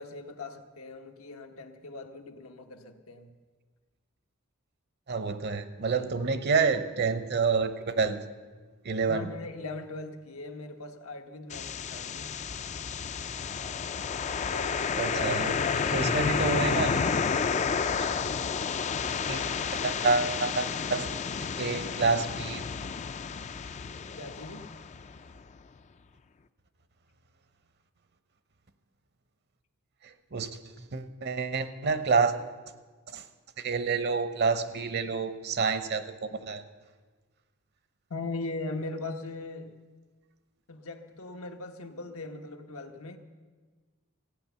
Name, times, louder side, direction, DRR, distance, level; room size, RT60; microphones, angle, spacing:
voice 1, 0.0-3.3 9.0-12.3 14.5-16.3 24.1-24.7 38.1-39.8 40.7-43.2, left 2 dB, 85° left, 5 dB, 1.1 m, -40 dB
voice 2, 5.1-8.2 8.8-9.3 14.9-15.5 15.9-17.0 19.3-21.1 21.6-22.6 30.0-32.3 33.1-33.3 33.6-36.6, right 4 dB, 50° right, 11 dB, 0.8 m, -28 dB
sound 1, 11.5-25.4, left 6 dB, 35° left, 0.4 m, -31 dB
15.0 x 9.2 x 6.9 m, 1.4 s
head